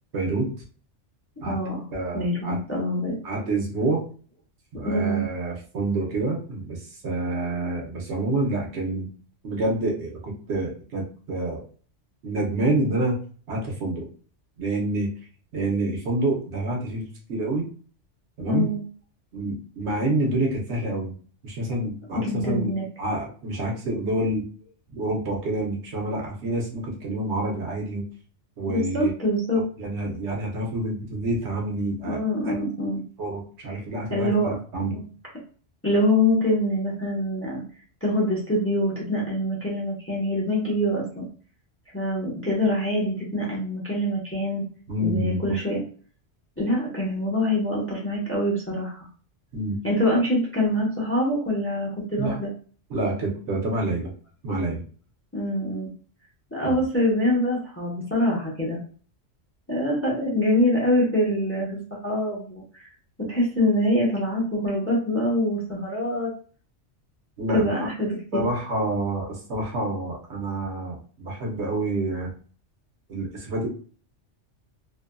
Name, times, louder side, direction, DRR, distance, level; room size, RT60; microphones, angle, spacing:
voice 1, 0.1-0.5 1.4-1.6 1.9-2.6 3.2-4.0 4.7-9.1 9.4-11.6 12.2-13.2 13.5-14.1 14.6-15.1 15.5-17.0 17.3-17.7 18.4-18.7 19.3-21.1 21.4-22.7 23.0-24.4 24.9-28.0 28.6-29.1 29.8-32.5 33.2-35.0 44.9-45.4 49.5-49.8 52.2-52.4 52.9-54.1 54.4-54.8 56.6-56.8 67.4-67.7 68.3-72.3 73.1-73.7, right 2 dB, 70° right, -1 dB, 1.0 m, -27 dB
voice 2, 1.4-1.8 2.1-3.2 4.8-5.2 18.5-18.8 22.1-22.8 28.7-29.6 32.0-33.0 33.7-33.8 34.1-34.5 34.9-35.0 35.8-37.6 38.0-41.3 41.9-44.6 45.0-45.8 46.6-49.0 49.8-52.5 55.3-55.9 56.5-58.8 59.7-62.9 63.3-66.3 67.5-68.5, left 1 dB, 10° left, -4 dB, 0.8 m, -24 dB
2.7 x 2.4 x 2.2 m, 0.41 s
omnidirectional pair, 1.3 m